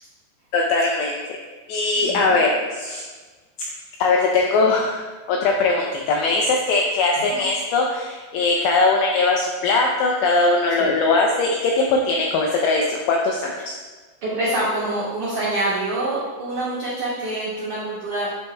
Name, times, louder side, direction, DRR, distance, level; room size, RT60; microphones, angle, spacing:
voice 1, 0.5-1.2 1.7-3.0 4.0-13.8, left 3 dB, 85° left, 0 dB, 2.4 m, -20 dB
voice 2, 2.0-2.4 7.3-7.4 10.8-10.9 14.2-18.3, right 1 dB, 85° right, -8 dB, 1.7 m, -26 dB
9.3 x 7.6 x 2.2 m, 1.3 s
omnidirectional pair, 5.7 m